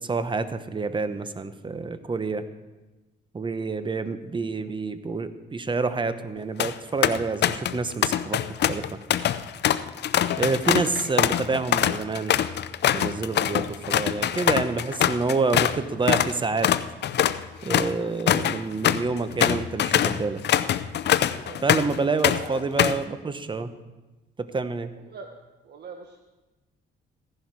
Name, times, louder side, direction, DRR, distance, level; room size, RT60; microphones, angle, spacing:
voice 1, 0.0-2.4 3.3-8.4 8.7-9.0 10.3-12.3 12.9-16.7 17.6-20.4 21.6-23.7 24.4-24.9, right 4 dB, 25° right, 11 dB, 0.9 m, -28 dB
voice 2, 3.6-3.9 21.4-21.6 22.2-22.7 25.0-25.3 25.6-26.2, right 5 dB, 55° right, 3 dB, 1.2 m, -42 dB
sound 1, 6.4-6.7 7.0-7.8 8.0-15.8 16.1-16.3 16.6-22.0 22.2-23.0, left 10 dB, 60° left, 0.6 m, -23 dB
15.5 x 11.0 x 4.7 m, 1.1 s
cardioid pair, 90°, 20 cm